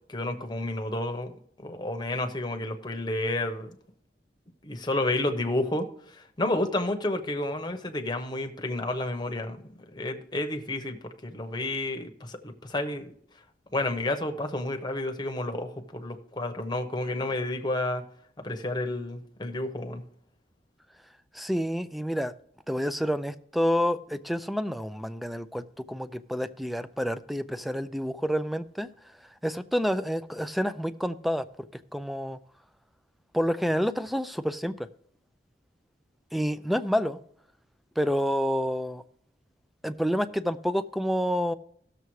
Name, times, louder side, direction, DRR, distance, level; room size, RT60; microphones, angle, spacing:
voice 1, 0.1-1.3 1.6-3.8 4.6-5.9 6.1-9.6 9.9-13.1 13.7-18.0 18.4-20.0, left 2 dB, 25° left, 0.9 m, -30 dB
voice 2, 21.3-22.3 22.7-28.9 29.4-31.4 31.9-32.4 33.3-34.7 36.3-37.2 38.0-39.0 39.8-41.5, equal, ahead, 0.3 m, -28 dB
17.0 x 6.7 x 3.2 m
head